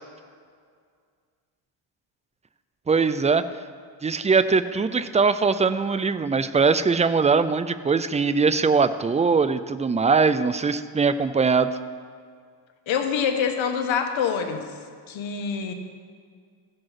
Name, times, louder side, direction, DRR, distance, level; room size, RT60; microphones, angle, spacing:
voice 1, 2.9-3.4 4.0-11.7, right 5 dB, 15° right, 13 dB, 0.3 m, -21 dB
voice 2, 12.9-14.7 15.1-15.7, left 7 dB, 75° left, 6 dB, 1.3 m, -25 dB
14.5 x 5.3 x 5.7 m, 2.1 s
cardioid pair, 80°, 48 cm